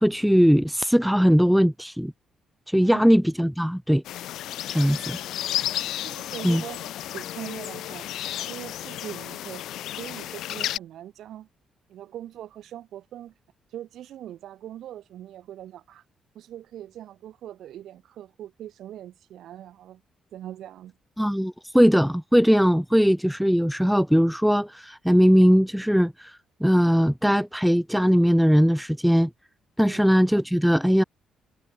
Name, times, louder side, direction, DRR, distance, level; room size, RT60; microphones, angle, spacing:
voice 1, 0.0-2.1 2.7-4.0 4.7-5.2 6.4-6.6 21.2-29.3 29.8-31.0, equal, ahead, 0.6 m, -20 dB
sound 1, 4.0-10.8, left 13 dB, 80° left, 1.3 m, -32 dB
voice 2, 6.0-8.1 8.5-9.6 9.9-11.5 11.9-13.3 13.7-16.1 16.4-20.0 20.3-20.9 29.8-30.1, right 12 dB, 75° right, 3.6 m, -41 dB
cardioid pair, 90°, 0 cm